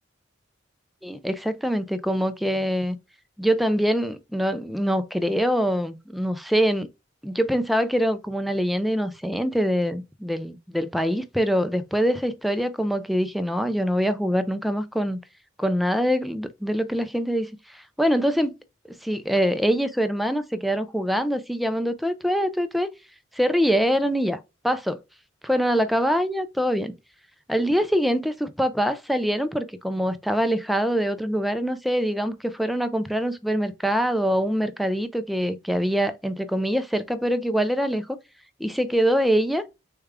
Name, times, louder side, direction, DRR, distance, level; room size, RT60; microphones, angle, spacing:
voice 1, 1.0-3.0 3.4-6.9 7.2-15.2 15.6-18.5 19.0-22.9 23.3-25.0 25.4-26.9 27.5-38.2 38.6-39.7, equal, ahead, 0.4 m, -24 dB
6.5 x 2.3 x 3.5 m
head